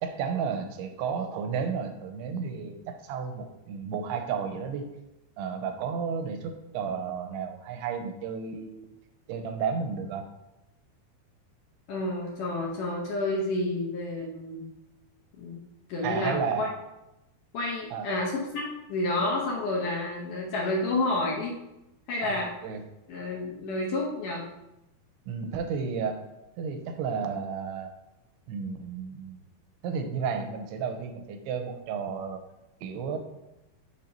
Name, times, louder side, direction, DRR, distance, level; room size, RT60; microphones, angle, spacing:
voice 1, 0.0-4.9 5.4-8.9 9.3-10.3 16.0-16.7 17.9-18.1 22.2-22.8 25.3-26.2 26.6-27.9 28.5-29.4 29.8-32.4 32.8-33.2, right 6 dB, 85° right, 6 dB, 2.6 m, -32 dB
voice 2, 11.9-14.6 15.4-15.6 15.9-16.7 17.5-21.6 22.1-22.5 23.1-24.5, left 2 dB, 75° left, -3 dB, 2.0 m, -30 dB
6.5 x 2.9 x 5.1 m, 0.94 s
omnidirectional pair, 4.6 m